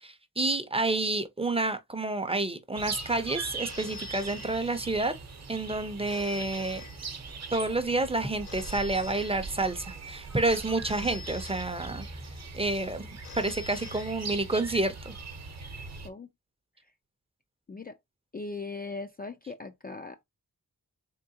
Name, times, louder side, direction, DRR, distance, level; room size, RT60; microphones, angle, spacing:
voice 1, 0.0-5.1 5.5-6.8 7.5-12.1 12.5-13.1 13.4-15.1, right 2 dB, 15° right, 0.6 m, -29 dB
sound 1, 2.8-16.1, right 4 dB, 50° right, 0.9 m, -41 dB
Telephone, 3.7-5.2 6.1-7.6 8.4-9.9 10.8-12.3 13.2-14.7, left 6 dB, 85° left, 0.7 m, -47 dB
voice 2, 18.3-20.2, left 3 dB, 25° left, 0.4 m, -39 dB
3.7 x 3.4 x 2.7 m
wide cardioid pair, 115°, 35 cm